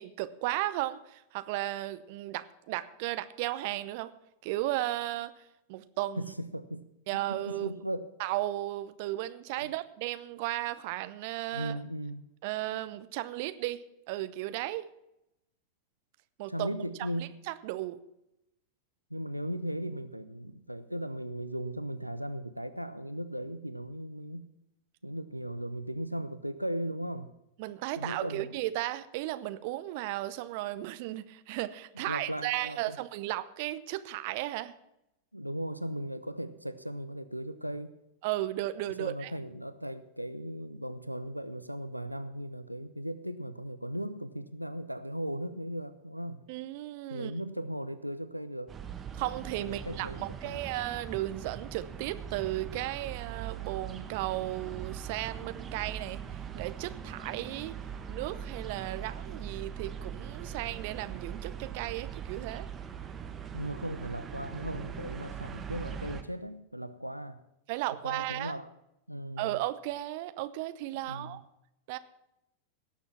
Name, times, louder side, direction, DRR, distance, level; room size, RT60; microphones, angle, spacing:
voice 1, 0.0-4.1 4.4-5.3 5.7-6.3 7.1-7.8 8.2-11.8 12.4-14.9 16.4-16.7 17.0-17.1 17.5-18.0 27.6-34.7 38.2-39.3 46.5-47.3 49.1-56.2 56.5-57.8 58.1-62.7 67.7-68.6 69.4-71.4 71.9-72.0, right 16 dB, 50° right, 13 dB, 0.7 m, -35 dB
voice 2, 6.2-8.1 9.6-9.7 11.5-12.3 16.5-17.3 19.1-24.5 25.0-27.3 28.0-28.5 31.9-33.0 35.3-37.9 39.0-46.4 47.1-48.7 49.6-50.6 63.5-67.4 68.0-68.7 69.1-69.6 70.9-71.4, equal, 90° right, 11 dB, 0.6 m, -37 dB
sound 1, 48.7-66.2, right 8 dB, 20° right, 1.3 m, -41 dB
18.0 x 7.1 x 5.8 m, 0.86 s
figure-of-eight pair, 90°, 0 cm